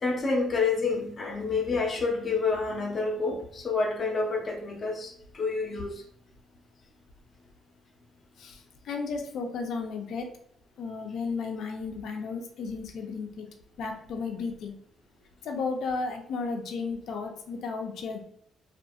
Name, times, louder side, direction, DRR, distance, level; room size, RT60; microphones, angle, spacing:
voice 1, 0.0-6.0, left 4 dB, 45° left, 1 dB, 0.7 m, -28 dB
voice 2, 8.4-10.3 10.8-13.5 13.8-14.7 15.4-18.2, left 4 dB, 75° left, 3 dB, 0.5 m, -34 dB
2.6 x 2.4 x 2.3 m, 0.70 s
cardioid pair, 90°, 0 cm